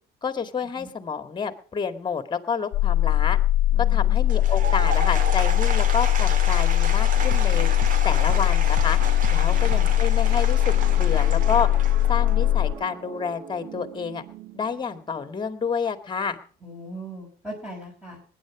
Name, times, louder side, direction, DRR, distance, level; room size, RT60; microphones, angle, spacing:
voice 1, 0.2-3.4 3.9-7.7 8.0-9.0 9.3-11.7 12.1-14.2 14.5-16.4, left 6 dB, 25° left, 10 dB, 1.9 m, -29 dB
sound 1, 2.7-12.7, left 13 dB, 85° left, 1.0 m, -20 dB
voice 2, 3.7-4.4 9.3-10.0 16.6-18.2, right 1 dB, 10° right, -2 dB, 5.9 m, -40 dB
Applause / Crowd, 4.2-12.4, right 5 dB, 50° right, 2.3 m, -33 dB
sound 2, 7.1-15.3, right 10 dB, 85° right, 1.2 m, -39 dB
20.5 x 9.9 x 4.9 m, 0.43 s
cardioid pair, 110°, 17 cm